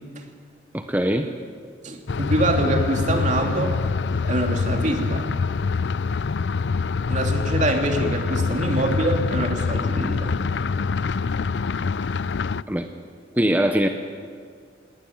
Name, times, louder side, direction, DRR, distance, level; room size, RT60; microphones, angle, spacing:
voice 1, 0.7-1.3 12.7-12.9 13.3-13.9, right 1 dB, 10° right, 5 dB, 0.9 m, -21 dB
voice 2, 1.8-3.8 4.2-5.3 7.1-10.3, right 1 dB, 45° right, 3 dB, 2.7 m, -24 dB
sound 1, 2.1-12.6, left 4 dB, 75° left, 0.5 m, -25 dB
19.0 x 18.5 x 9.6 m, 2.1 s
head